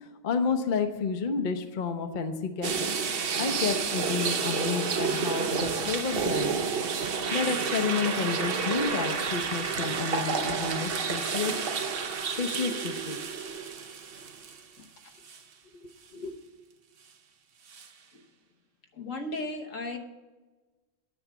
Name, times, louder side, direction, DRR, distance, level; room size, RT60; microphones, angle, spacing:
voice 1, 0.0-3.0 3.4-6.6 7.3-11.5 12.4-13.2 15.7-16.4, left 5 dB, 40° left, 7 dB, 0.8 m, -31 dB
sound 1, 2.6-14.8 15.3-15.4 17.7-17.9, right 5 dB, 50° right, 0.9 m, -30 dB
voice 2, 18.9-20.0, left 2 dB, 70° left, 5 dB, 1.4 m, -35 dB
9.7 x 7.1 x 8.2 m, 1.2 s
omnidirectional pair, 1.4 m